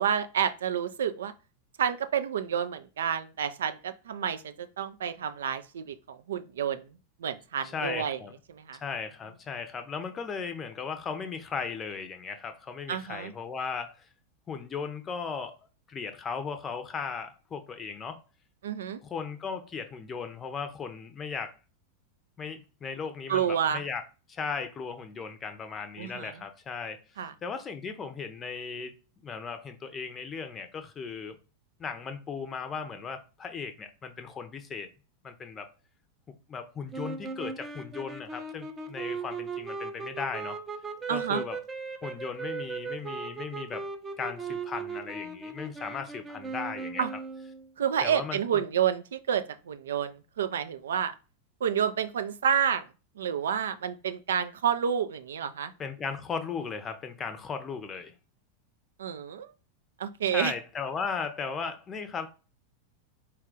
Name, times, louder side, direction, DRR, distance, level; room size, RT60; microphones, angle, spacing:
voice 1, 0.0-1.3 1.8-6.9 7.2-8.2 8.5-8.8 12.9-13.3 18.6-19.0 23.3-23.8 26.0-26.3 27.2-27.3 41.1-41.4 47.0-47.1 47.8-51.1 51.6-52.8 53.2-55.7 59.0-59.5 60.0-60.5, right 8 dB, 65° right, 0.3 m, -29 dB
voice 2, 7.6-8.3 8.8-14.1 14.5-15.6 15.9-18.2 19.0-21.6 22.4-24.0 24.3-27.0 27.4-28.9 29.2-31.4 31.8-34.9 35.2-35.7 36.5-40.6 41.1-41.6 42.0-43.8 44.2-47.0 48.0-48.6 55.8-58.1 60.3-62.3, left 5 dB, 25° left, 0.6 m, -36 dB
sound 1, 36.9-47.7, right 4 dB, 20° right, 0.6 m, -38 dB
4.4 x 2.4 x 3.7 m
figure-of-eight pair, 90°, 0 cm